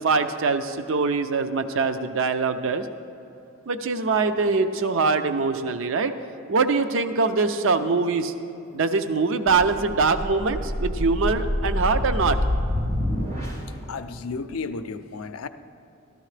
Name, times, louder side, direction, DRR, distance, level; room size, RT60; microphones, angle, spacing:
voice 1, 0.0-2.9 3.7-6.1 6.5-8.3 8.7-12.4, right 4 dB, 65° right, 10 dB, 0.5 m, -23 dB
sound 1, 9.5-13.8, left 1 dB, 90° right, 2.3 m, -27 dB
voice 2, 13.9-15.5, left 4 dB, 85° left, 10 dB, 0.5 m, -33 dB
13.0 x 13.0 x 3.3 m, 2.7 s
head